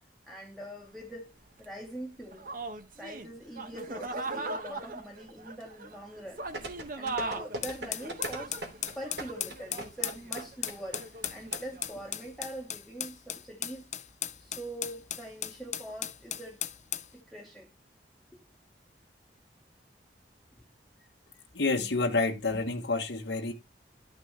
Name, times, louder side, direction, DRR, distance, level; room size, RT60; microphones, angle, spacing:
voice 1, 0.3-1.3 1.6-2.5 3.0-6.4 7.0-8.6 8.9-13.8 14.4-16.6 17.1-17.7 18.3-18.5, right 1 dB, ahead, 1.3 m, -43 dB
sound 1, 0.8-0.9 1.6-1.7 2.3-12.1, right 3 dB, 50° right, 1.3 m, -39 dB
sound 2, 6.5-11.6 11.8-11.9, right 1 dB, 75° right, 2.8 m, -38 dB
sound 3, 7.6-17.1, left 11 dB, 40° left, 0.6 m, -37 dB
voice 2, 21.5-23.5, left 3 dB, 85° left, 1.2 m, -28 dB
12.0 x 6.1 x 3.3 m
head